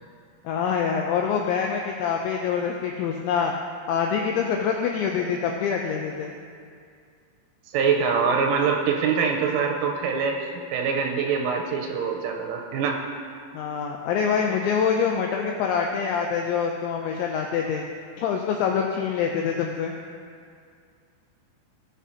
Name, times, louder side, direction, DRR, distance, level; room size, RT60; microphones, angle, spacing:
voice 1, 0.4-3.5 3.9-6.3 13.5-17.8 18.2-19.9, left 6 dB, 90° left, 1 dB, 2.6 m, -25 dB
voice 2, 7.7-13.0, right 6 dB, 85° right, 2 dB, 3.2 m, -24 dB
18.5 x 7.2 x 2.8 m, 2.3 s
omnidirectional pair, 6.0 m